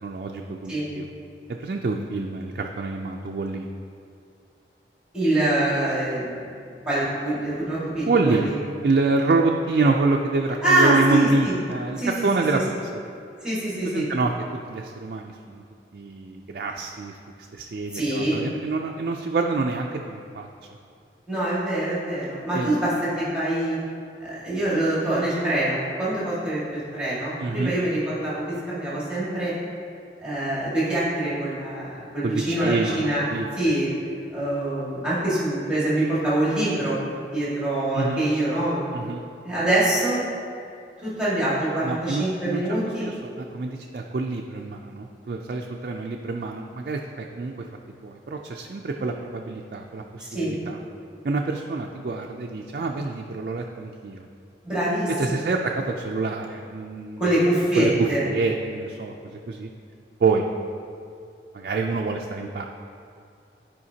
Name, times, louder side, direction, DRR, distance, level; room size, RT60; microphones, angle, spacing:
voice 1, 0.0-1.1 1.5-3.7 8.1-8.5 8.8-12.6 12.9-13.0 13.8-14.3 14.7-15.6 15.9-17.1 17.5-20.5 22.5-22.7 27.4-27.8 32.2-33.5 37.9-38.3 38.9-39.2 41.8-47.7 48.0-50.8 51.2-54.2 55.2-57.2 57.8-57.9 58.2-59.7 60.2-60.5 61.5-62.6, right 3 dB, 55° right, 1 dB, 0.4 m, -27 dB
voice 2, 5.1-6.4 6.9-8.5 10.6-11.6 12.0-12.6 13.4-14.1 17.9-18.4 21.3-23.8 24.2-29.5 30.2-33.3 33.6-33.9 34.3-37.0 37.3-38.8 39.4-40.3 41.0-43.1 50.3-50.5 54.6-55.5 57.2-58.2, right 1 dB, 5° right, -10 dB, 1.8 m, -24 dB
12.0 x 5.0 x 2.8 m, 2.4 s
head